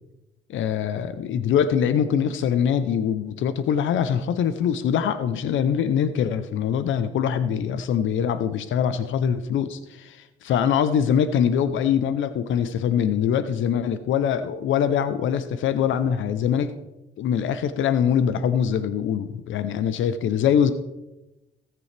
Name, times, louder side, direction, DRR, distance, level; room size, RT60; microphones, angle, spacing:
voice 1, 0.5-16.8 17.2-20.7, left 8 dB, 75° left, 12 dB, 0.7 m, -23 dB
17.5 x 6.9 x 3.3 m, 0.99 s
cardioid pair, 90°, 20 cm